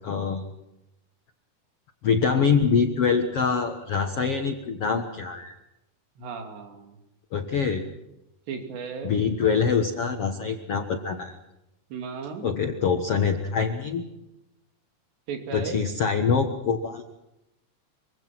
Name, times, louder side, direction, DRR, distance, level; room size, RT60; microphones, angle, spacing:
voice 1, 0.0-0.5 2.0-5.5 7.3-7.8 9.0-11.4 12.4-14.0 15.5-17.0, left 6 dB, 70° left, 5 dB, 1.4 m, -24 dB
voice 2, 6.2-6.9 8.5-9.1 11.9-12.5 15.3-15.8, right 5 dB, 90° right, 5 dB, 5.1 m, -35 dB
25.5 x 25.0 x 6.0 m, 0.90 s
omnidirectional pair, 4.8 m